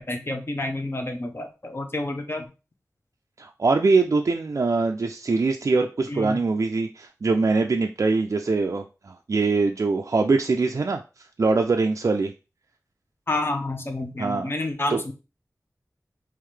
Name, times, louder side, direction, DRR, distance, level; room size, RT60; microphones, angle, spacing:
voice 1, 0.0-2.5 6.1-6.4 13.3-15.1, left 2 dB, 40° left, 5 dB, 0.7 m, -29 dB
voice 2, 3.4-11.0 11.4-12.3 14.2-14.5 14.9-15.0, right 3 dB, 55° right, 3 dB, 0.3 m, -23 dB
3.8 x 3.0 x 3.2 m, 0.30 s
wide cardioid pair, 80°, 6 cm